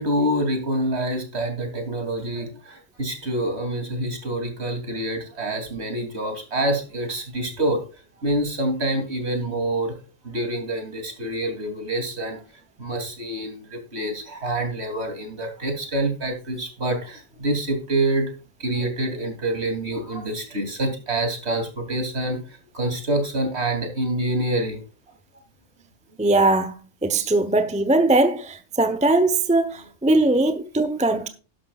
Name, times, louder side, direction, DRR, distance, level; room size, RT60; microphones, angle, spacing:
voice 1, 0.0-7.8 8.2-10.0 10.2-12.4 12.8-18.3 18.6-22.4 22.7-24.8, right 1 dB, 55° right, 3.3 m, -26 dB
voice 2, 26.2-26.7 27.0-31.3, right 2 dB, 5° right, 0.8 m, -20 dB
12.0 x 11.0 x 2.4 m
omnidirectional pair, 1.3 m